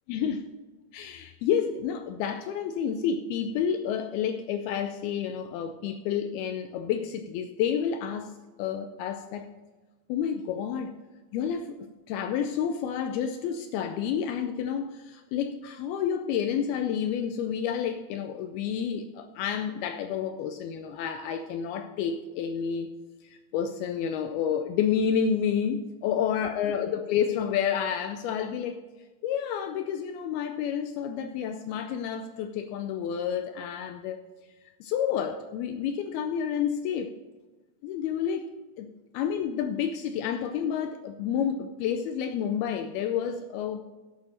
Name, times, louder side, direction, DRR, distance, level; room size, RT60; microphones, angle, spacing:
voice 1, 0.1-0.4 0.9-8.3 8.6-9.5 10.1-10.9 11.3-11.8 12.1-22.9 23.2-28.8 29.2-34.2 34.8-37.1 37.8-38.5 38.8-38.9 39.1-43.8, left 8 dB, 80° left, 7 dB, 2.3 m, -29 dB
12.0 x 8.8 x 4.3 m, 1.2 s
omnidirectional pair, 4.9 m